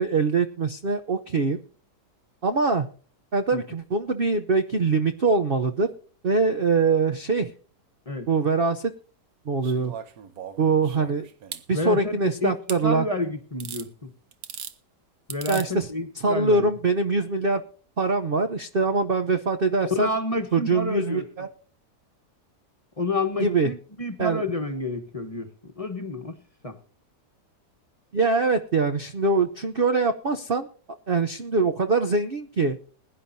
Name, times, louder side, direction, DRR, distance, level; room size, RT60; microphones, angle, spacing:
voice 1, 0.0-1.6 2.4-2.9 3.3-5.9 6.2-7.5 8.3-8.9 9.5-9.9 10.6-11.3 11.7-13.1 15.5-15.9 16.2-17.6 18.0-20.1 20.5-21.5 23.4-23.7 24.2-24.4 28.1-30.7 31.1-32.8, right 4 dB, 45° right, 7 dB, 0.7 m, -23 dB
sound 1, 9.6-11.7 12.7-12.8 13.6-13.9 14.3-14.8 15.3-15.7 16.9-17.0, right 8 dB, 60° right, 1.3 m, -38 dB
voice 2, 11.7-12.5 12.8-14.1 15.3-16.7 19.9-21.2 23.0-26.4 26.6-26.8, left 2 dB, 25° left, 6 dB, 1.1 m, -29 dB
21.0 x 10.5 x 2.7 m, 0.42 s
omnidirectional pair, 1.8 m